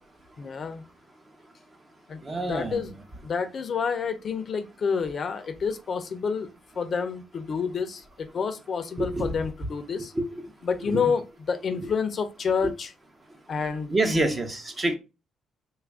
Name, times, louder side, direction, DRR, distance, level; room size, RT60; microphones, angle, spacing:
voice 1, 0.4-0.8 2.1-2.2 2.5-2.9 3.2-6.5 6.8-10.1 10.6-12.9 13.5-14.4, left 5 dB, 50° left, 0.5 m, -29 dB
voice 2, 2.2-3.0 9.0-9.3 10.1-10.5 10.9-11.1 11.7-11.9 12.6-12.7 13.9-15.0, right 2 dB, 30° right, 0.7 m, -28 dB
3.1 x 2.4 x 3.4 m
cardioid pair, 90°, 0 cm